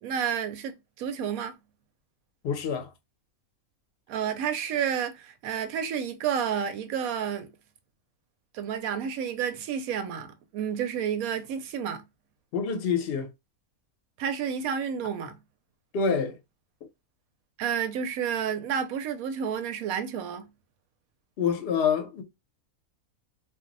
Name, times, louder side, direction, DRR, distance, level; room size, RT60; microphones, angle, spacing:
voice 1, 0.0-1.5 4.1-7.5 8.5-12.0 14.2-15.4 17.6-20.5, right 8 dB, 80° right, 1.0 m, -30 dB
voice 2, 2.4-2.9 12.5-13.3 15.9-16.4 21.4-22.2, left 6 dB, 55° left, 0.7 m, -26 dB
2.5 x 2.0 x 3.8 m
omnidirectional pair, 1.5 m